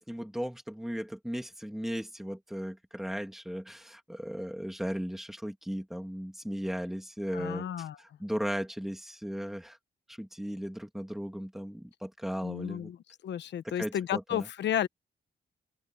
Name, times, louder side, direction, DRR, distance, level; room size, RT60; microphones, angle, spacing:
voice 1, 0.1-9.8 10.1-12.9 13.6-14.5, equal, ahead, 2.5 m, -36 dB
voice 2, 7.3-8.0 12.4-13.0 13.2-14.9, left 10 dB, 90° left, 1.0 m, -32 dB
open air
wide cardioid pair, 170°, 18 cm